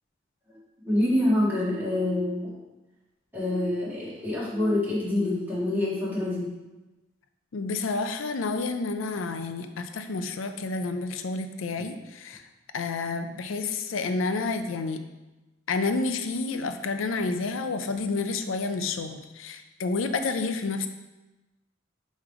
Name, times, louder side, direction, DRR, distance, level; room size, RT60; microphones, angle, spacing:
voice 1, 0.8-2.5 3.3-6.5, left 1 dB, 10° right, -8 dB, 2.0 m, -26 dB
voice 2, 7.5-12.4 12.7-15.1 15.7-20.9, left 3 dB, 85° left, 8 dB, 0.5 m, -29 dB
7.4 x 3.2 x 4.9 m, 1.1 s
head